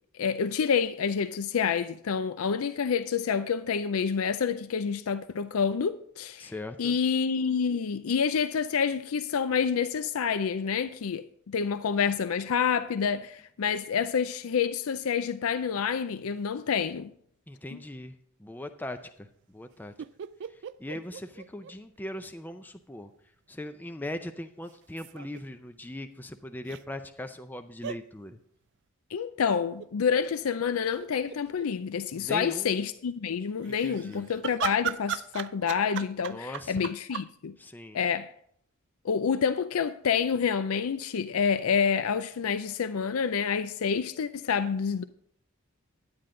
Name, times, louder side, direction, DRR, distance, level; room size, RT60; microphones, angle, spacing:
voice 1, 0.2-6.5 6.8-17.1 17.7-17.8 29.1-37.5 37.9-38.3 39.0-45.0, left 6 dB, 85° left, 0.5 m, -28 dB
voice 2, 6.4-7.0 17.5-18.1 18.4-19.9 20.5-23.1 23.5-28.4 32.1-32.7 33.6-34.3 36.3-36.9 37.6-38.0, left 1 dB, 10° left, 0.5 m, -40 dB
sound 1, 20.0-22.2 22.5-22.6 24.7-25.4 26.7-26.8 27.8-28.0 29.8-30.2 30.7-30.8 31.0-31.7 33.6-37.3, right 10 dB, 55° right, 0.3 m, -37 dB
10.5 x 9.6 x 3.8 m
head